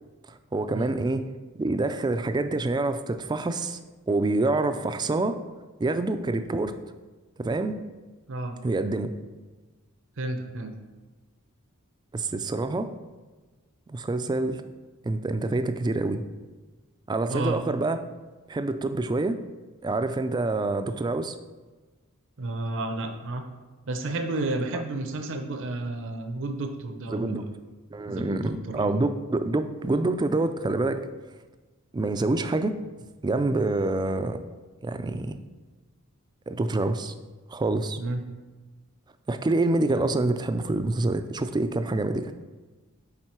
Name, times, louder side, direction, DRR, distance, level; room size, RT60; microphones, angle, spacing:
voice 1, 0.3-1.3 1.6-3.8 4.1-5.4 5.8-6.8 7.4-7.8 8.6-9.1 12.1-12.9 13.9-14.6 15.0-16.2 17.1-18.0 18.5-19.4 19.8-21.4 27.1-27.5 27.9-31.1 31.9-32.7 33.2-34.4 34.8-35.4 36.5-37.1 37.5-38.0 39.3-42.3, right 2 dB, 20° right, 10 dB, 0.3 m, -26 dB
voice 2, 10.2-10.7 17.3-17.6 22.4-23.5 23.9-27.5 28.1-28.9 38.0-38.2, right 2 dB, 60° right, 5 dB, 0.6 m, -31 dB
9.0 x 3.7 x 4.4 m, 1.3 s
head